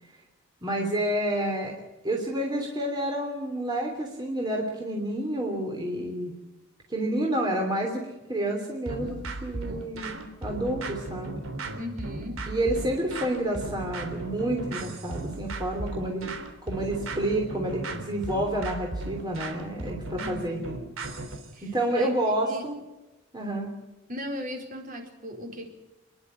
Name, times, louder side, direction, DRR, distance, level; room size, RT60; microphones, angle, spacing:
voice 1, 0.6-1.7 2.0-6.3 6.9-8.0 8.3-11.4 12.5-16.3 16.6-20.8 21.6-22.7 23.3-23.7, right 1 dB, 20° right, 0 dB, 3.1 m, -29 dB
sound 1, 8.9-21.5, right 2 dB, 85° right, 3.4 m, -36 dB
voice 2, 11.8-12.4 20.2-20.7 21.5-22.7 24.1-25.7, equal, 45° right, 2 dB, 4.4 m, -37 dB
28.5 x 11.0 x 9.4 m, 1.1 s
head